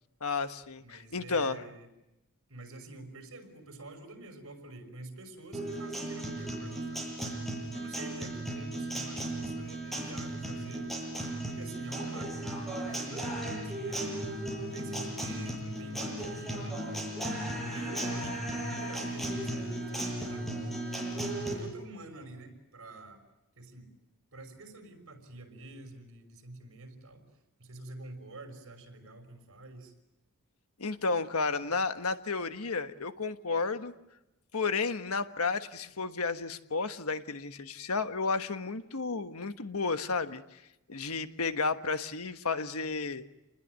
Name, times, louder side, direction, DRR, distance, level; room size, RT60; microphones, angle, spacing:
voice 1, 0.2-1.6 30.8-33.9 34.5-40.6 40.9-43.2, left 4 dB, 80° left, 9 dB, 1.4 m, -32 dB
voice 2, 0.8-1.9 2.5-7.1 7.7-10.9 11.5-16.8 17.4-20.7 21.4-23.2 23.6-24.0 24.3-27.2 27.6-29.9, right 2 dB, 65° right, 6 dB, 5.7 m, -47 dB
Guitar, 5.5-21.5, right 1 dB, ahead, 7.6 m, -36 dB
29.0 x 20.5 x 9.5 m, 0.93 s
head